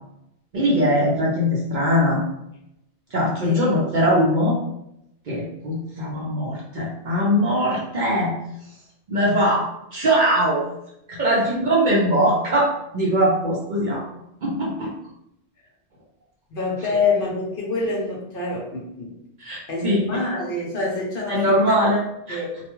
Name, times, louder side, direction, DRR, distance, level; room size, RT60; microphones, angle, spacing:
voice 1, 0.5-2.2 3.1-4.6 5.3-8.3 9.1-10.6 11.1-14.0 14.4-14.9 19.4-20.0 21.3-22.0 22.3-22.4, equal, 50° right, -4 dB, 0.6 m, -21 dB
voice 2, 3.4-3.8 16.5-19.2 19.7-21.8 22.3-22.6, left 3 dB, 60° left, -3 dB, 0.7 m, -26 dB
2.3 x 2.2 x 2.9 m, 0.82 s
omnidirectional pair, 1.2 m